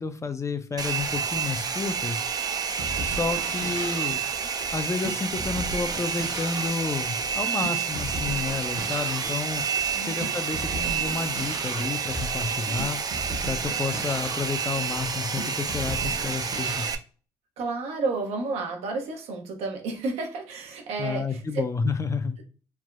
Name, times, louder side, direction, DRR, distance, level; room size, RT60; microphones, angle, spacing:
voice 1, 0.0-2.2 3.0-4.2 4.7-9.6 10.1-13.0 13.4-16.9 21.0-22.4, left 4 dB, 30° left, 9 dB, 0.5 m, -30 dB
Domestic sounds home sounds, 0.8-17.0, right 6 dB, 40° right, 0.4 m, -29 dB
sound 1, 2.7-16.9, right 2 dB, 55° right, 0.9 m, -37 dB
voice 2, 17.6-21.7, right 3 dB, 80° right, 3 dB, 0.7 m, -31 dB
3.3 x 2.1 x 2.3 m, 0.38 s
supercardioid pair, 55°, 11 cm